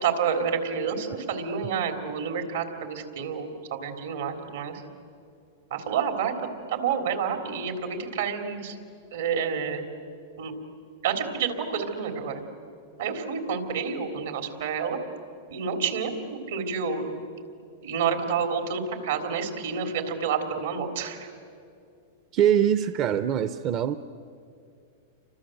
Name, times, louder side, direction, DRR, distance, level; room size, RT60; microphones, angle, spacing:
voice 1, 0.0-4.8 5.7-8.8 9.1-9.8 10.4-10.6 11.0-12.4 13.0-15.0 15.5-17.1 17.8-21.3, right 6 dB, 80° right, 5 dB, 3.6 m, -29 dB
voice 2, 22.3-24.0, right 9 dB, 40° right, 11 dB, 0.7 m, -23 dB
30.0 x 25.0 x 8.0 m, 2.5 s
hypercardioid pair, 125°, 0 cm